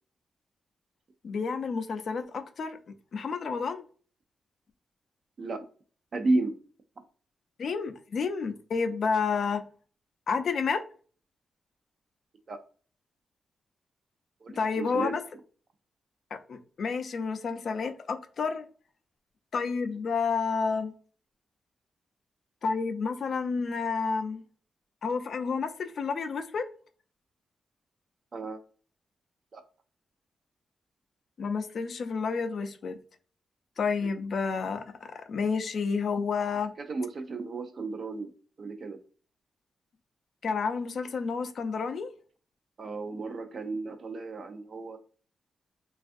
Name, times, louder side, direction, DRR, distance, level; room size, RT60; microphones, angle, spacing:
voice 1, 1.2-2.8 3.1-3.8 7.6-9.6 10.3-10.8 14.6-15.2 16.3-18.7 19.5-20.9 22.6-24.4 25.0-26.6 31.4-33.0 33.8-36.7 40.4-42.1, left 5 dB, 55° left, 0.4 m, -30 dB
voice 2, 6.1-6.6 12.5-12.6 14.4-15.2 28.3-28.6 29.5-29.6 34.0-34.1 36.8-38.3 38.6-39.0 42.8-45.0, right 2 dB, 45° right, 0.4 m, -33 dB
3.3 x 2.3 x 2.5 m
wide cardioid pair, 135°, 0 cm